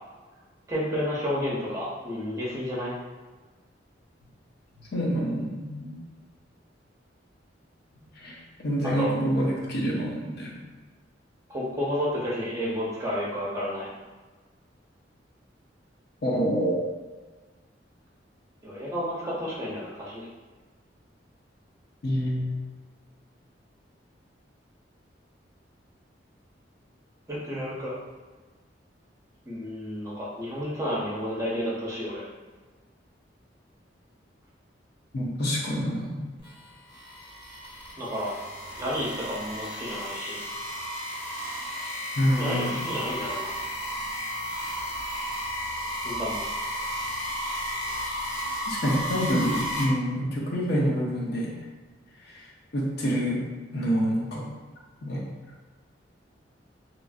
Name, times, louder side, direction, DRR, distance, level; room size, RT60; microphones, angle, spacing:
voice 1, 0.7-3.0 9.0-9.1 11.5-13.9 18.6-20.3 27.3-27.9 29.5-32.2 38.0-38.3 38.7-40.4 42.4-43.5 46.0-46.4, equal, 15° right, -6 dB, 0.7 m, -31 dB
voice 2, 4.9-6.0 8.2-10.6 16.2-16.8 22.0-22.4 35.1-36.3 42.2-42.9 48.7-51.5 52.3-53.4 53.7-54.4 55.0-55.2, equal, 60° left, -3 dB, 0.6 m, -27 dB
sound 1, 36.4-49.8, equal, 30° left, 0.9 m, -33 dB
2.9 x 2.5 x 2.4 m, 1.3 s
head